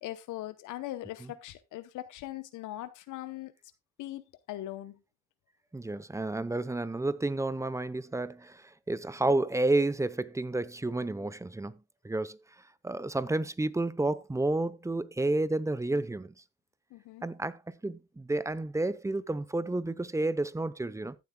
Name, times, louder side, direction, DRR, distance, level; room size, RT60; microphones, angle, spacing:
voice 1, 0.0-3.5 4.0-4.2 4.5-5.0 16.9-17.2, left 15 dB, 85° left, 0.8 m, -40 dB
voice 2, 5.7-11.8 12.0-12.4 12.8-16.3 17.2-21.2, right 2 dB, 10° right, 0.7 m, -31 dB
14.5 x 7.9 x 2.2 m
cardioid pair, 90°, 30 cm